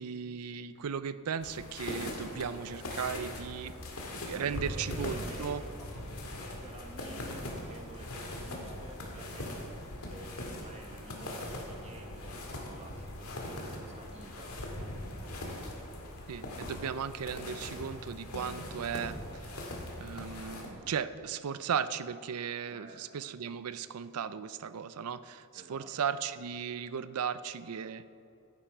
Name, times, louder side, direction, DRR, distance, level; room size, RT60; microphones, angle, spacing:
voice 1, 0.0-3.7 4.3-5.6 16.3-19.2 19.5-19.6 20.0-28.0, right 7 dB, 85° right, 14 dB, 0.5 m, -36 dB
sound 1, 1.4-20.7, left 1 dB, 85° left, 2.0 m, -41 dB
voice 2, 4.4-15.3 22.7-23.2 25.5-25.9, right 1 dB, 30° right, 2 dB, 1.5 m, -51 dB
15.0 x 8.8 x 4.5 m, 2.7 s
head